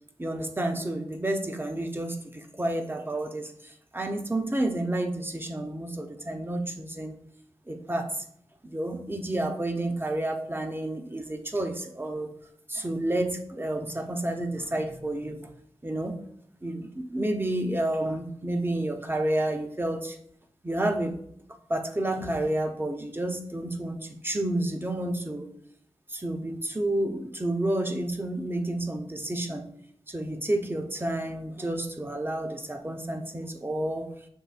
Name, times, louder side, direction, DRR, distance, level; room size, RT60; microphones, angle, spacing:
voice 1, 0.2-7.1 7.7-8.2 8.6-12.3 12.7-15.5 15.8-16.2 16.6-20.2 20.6-21.2 21.7-25.5 26.1-29.7 30.1-34.1, right 1 dB, 20° right, 4 dB, 0.6 m, -30 dB
6.2 x 3.1 x 2.5 m, 0.67 s
cardioid pair, 50°, 11 cm